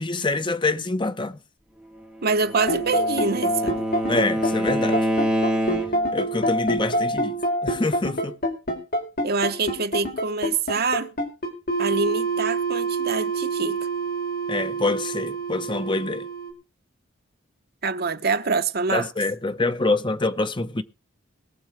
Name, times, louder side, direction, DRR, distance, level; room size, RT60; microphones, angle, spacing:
voice 1, 0.0-1.4 4.1-5.1 6.1-7.4 7.6-8.4 14.5-16.3 18.9-20.8, left 2 dB, 25° left, 0.9 m, -25 dB
voice 2, 2.2-3.8 9.2-11.1 11.8-13.8 17.8-19.1, right 4 dB, 55° right, 1.2 m, -25 dB
Bowed string instrument, 2.3-6.2, equal, 5° right, 2.4 m, -26 dB
sound 1, 2.5-16.5, right 2 dB, 50° left, 4.2 m, -26 dB
21.0 x 7.0 x 5.0 m
head